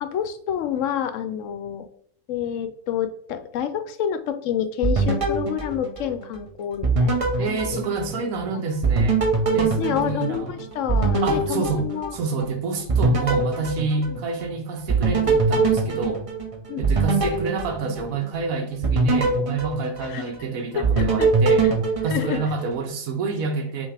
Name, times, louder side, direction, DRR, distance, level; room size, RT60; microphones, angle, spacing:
voice 1, 0.0-1.9 2.3-7.5 8.5-8.6 9.8-12.1 14.1-14.2 16.7-16.8 20.0-20.3 20.7-21.3 21.6-21.7 22.1-22.4, left 9 dB, 70° left, 0.9 m, -28 dB
sound 1, 4.8-6.4 6.8-8.4 8.8-12.5 12.9-14.5 14.9-18.4 18.8-20.4 20.8-22.8, right 3 dB, 35° right, 0.6 m, -23 dB
voice 2, 7.4-9.2 9.5-10.6 11.2-16.2 16.8-21.7 22.0-23.9, right 4 dB, 90° right, 1.1 m, -28 dB
5.5 x 2.9 x 3.3 m
omnidirectional pair, 1.4 m